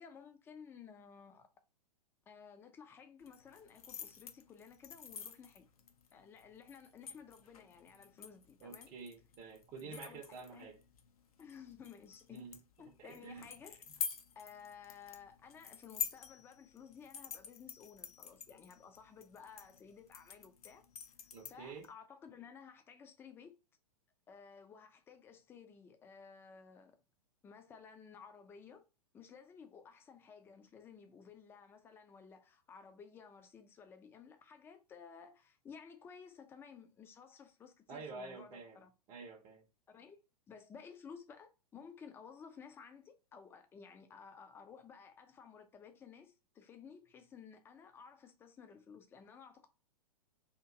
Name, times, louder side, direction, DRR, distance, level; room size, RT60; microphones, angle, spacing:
voice 1, 0.0-1.5 2.3-5.7 6.1-8.9 9.8-10.7 11.4-12.4 12.8-13.9 14.4-20.8 21.2-23.6 24.3-27.0 27.4-28.9 29.1-38.9 39.9-40.2 40.5-49.7, left 6 dB, 10° left, 0.4 m, -55 dB
sound 1, 3.2-21.9, left 7 dB, 65° left, 0.5 m, -48 dB
voice 2, 8.6-10.8 12.3-12.6 13.0-13.5 21.3-21.9 37.9-38.8 39.1-39.6, right 4 dB, 30° right, 0.6 m, -49 dB
2.9 x 2.5 x 3.6 m
figure-of-eight pair, 105°, 20 cm